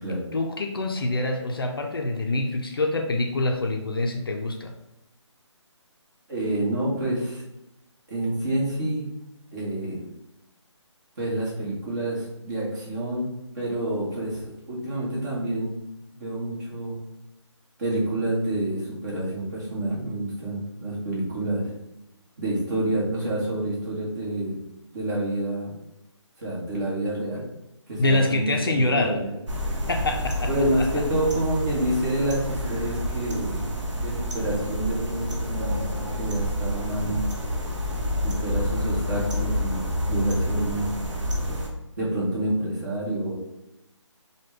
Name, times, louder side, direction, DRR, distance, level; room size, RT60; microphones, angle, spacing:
voice 1, 0.3-4.7 28.0-29.2 29.9-30.5 30.8-30.9, left 2 dB, 50° left, 3 dB, 0.4 m, -25 dB
voice 2, 6.3-7.4 8.1-9.1 9.5-10.0 11.2-13.3 13.5-15.7 16.1-17.0 17.8-21.7 22.4-24.6 24.9-25.7 26.4-27.4 27.9-29.3 30.5-33.7 34.0-37.3 38.2-40.9 42.0-43.3, right 1 dB, 35° right, -6 dB, 1.2 m, -28 dB
sound 1, 29.5-41.7, equal, 70° right, 0.9 m, -28 dB
3.2 x 2.2 x 3.1 m, 0.88 s
figure-of-eight pair, 165°, 16 cm